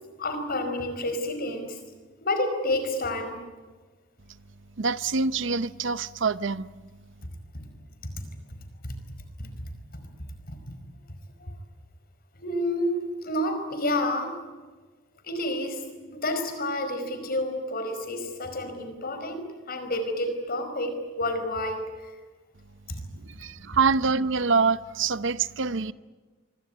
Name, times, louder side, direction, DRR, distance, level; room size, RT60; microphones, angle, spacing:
voice 1, 0.2-1.8 2.2-3.4 7.5-7.7 8.8-9.0 9.4-9.5 10.5-10.6 11.4-11.5 12.3-14.3 15.2-15.8 16.1-22.1, left 1 dB, 50° left, 5.1 m, -29 dB
voice 2, 4.8-6.7 23.2-25.9, right 5 dB, 65° right, 0.8 m, -25 dB
25.5 x 24.0 x 9.4 m
head